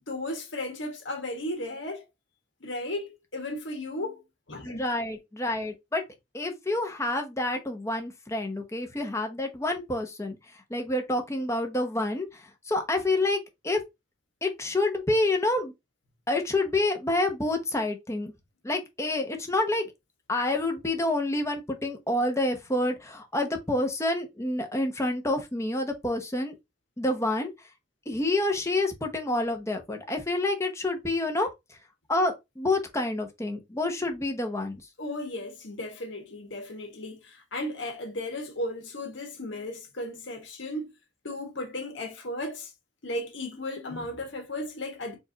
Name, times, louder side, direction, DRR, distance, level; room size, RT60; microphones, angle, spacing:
voice 1, 0.1-2.0 2.6-4.2 4.5-4.8 35.0-40.9 41.2-42.7 43.0-45.2, left 1 dB, 80° left, 1.5 m, -35 dB
voice 2, 4.6-6.0 6.3-13.8 14.4-15.7 16.3-18.3 18.6-19.9 20.3-26.6 27.0-27.7 28.1-31.8 32.1-34.8, left 2 dB, 15° left, 0.9 m, -28 dB
4.6 x 2.6 x 3.9 m
head